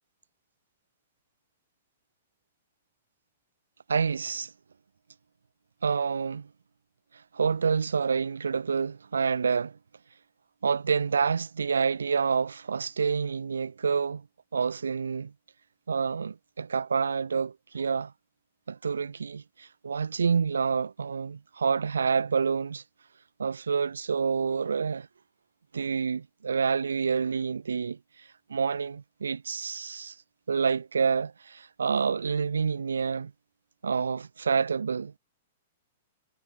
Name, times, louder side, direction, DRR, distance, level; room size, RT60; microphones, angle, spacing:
voice 1, 3.9-4.5 5.8-6.5 7.3-9.8 10.6-14.2 14.5-15.3 15.9-18.1 18.7-22.8 23.4-25.1 25.7-28.0 28.5-30.1 30.5-33.3 33.8-35.1, right 5 dB, 80° right, 0.8 m, -28 dB
hypercardioid pair, 110°, 0 cm